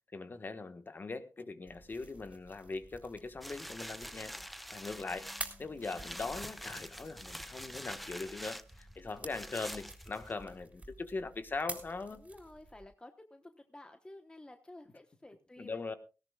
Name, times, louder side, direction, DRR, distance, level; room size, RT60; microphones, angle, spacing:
voice 1, 0.1-4.4 4.7-5.3 5.6-12.2 15.6-15.9, left 3 dB, 35° left, 9 dB, 1.4 m, -41 dB
sound 1, 1.7-12.8, right 2 dB, 20° right, 3.7 m, -50 dB
sound 2, 3.4-10.6 11.1-11.2, equal, ahead, 0.7 m, -46 dB
voice 2, 4.1-4.5 7.7-7.8 9.0-9.3 12.1-15.8, left 1 dB, 15° left, 6 dB, 1.2 m, -53 dB
sound 3, 4.9-11.1, left 4 dB, 80° left, 1.9 m, -64 dB
18.0 x 17.0 x 2.4 m, 0.32 s
cardioid pair, 105°, 6 cm